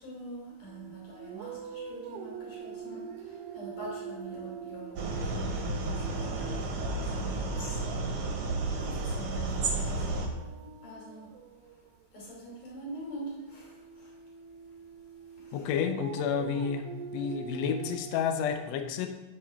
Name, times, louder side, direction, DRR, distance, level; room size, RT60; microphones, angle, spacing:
voice 1, 0.0-8.3 8.8-10.2 10.8-11.3 12.1-14.1 15.4-15.7, right 1 dB, 55° left, -5 dB, 4.4 m, -45 dB
sound 1, 0.7-11.9 13.2-18.5, right 6 dB, 80° right, 2.1 m, -44 dB
sound 2, 5.0-10.3, right 2 dB, 60° right, 1.9 m, -32 dB
voice 2, 15.5-16.9 17.1-19.1, left 7 dB, 80° left, 7 dB, 1.5 m, -30 dB
8.6 x 8.4 x 3.5 m, 1.2 s
omnidirectional pair, 3.8 m